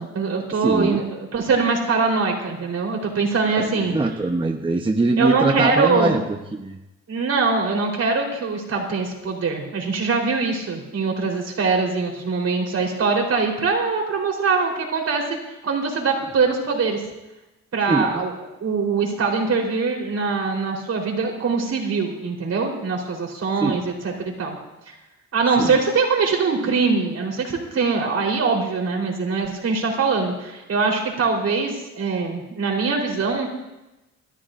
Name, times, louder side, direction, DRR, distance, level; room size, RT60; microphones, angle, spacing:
voice 1, 0.0-3.9 5.2-6.1 7.1-15.2 15.6-17.0 17.7-24.6 24.9-25.0 25.3-33.5, right 4 dB, 55° right, 0 dB, 3.9 m, -23 dB
voice 2, 0.6-1.0 3.6-6.8 17.8-18.2 23.6-23.8 25.6-25.7, right 2 dB, 15° right, 3 dB, 0.9 m, -22 dB
28.0 x 12.5 x 2.6 m, 0.98 s
cardioid pair, 90°, 30 cm